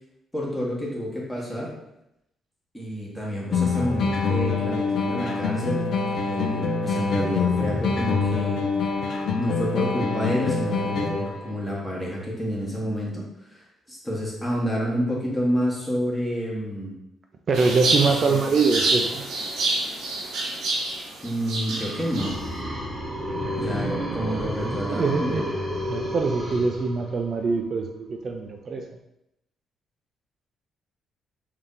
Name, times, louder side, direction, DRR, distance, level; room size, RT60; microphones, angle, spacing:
voice 1, 0.3-1.7 2.7-5.8 6.1-8.6 9.4-13.2 13.5-16.9 18.0-18.4 21.2-22.4 23.6-25.4, equal, 10° left, -5 dB, 1.4 m, -29 dB
sound 1, 3.5-11.5, left 4 dB, 65° left, 0.5 m, -25 dB
voice 2, 17.5-19.3 24.6-25.5 25.9-28.8, right 4 dB, 50° right, 3 dB, 0.4 m, -24 dB
sound 2, 17.5-22.3, right 2 dB, 75° right, 0.8 m, -27 dB
sound 3, 21.5-27.4, equal, 20° right, 1.2 m, -31 dB
3.4 x 2.7 x 3.7 m, 0.85 s
cardioid pair, 90°, 0 cm